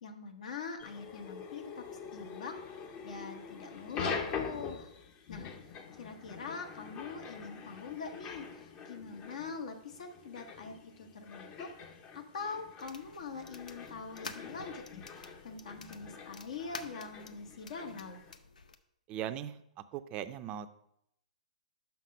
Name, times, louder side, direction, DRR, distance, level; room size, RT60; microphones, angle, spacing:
voice 1, 0.0-2.6 3.0-4.9 5.3-11.7 12.1-18.2, left 4 dB, 65° left, 6 dB, 1.0 m, -43 dB
sound 1, 0.8-18.3, left 6 dB, 30° left, 0.7 m, -45 dB
sound 2, 12.8-18.8, left 4 dB, 85° left, 0.6 m, -50 dB
voice 2, 19.1-20.7, right 10 dB, 30° right, 11 dB, 0.5 m, -39 dB
5.8 x 5.8 x 5.3 m, 0.75 s
hypercardioid pair, 130°, 4 cm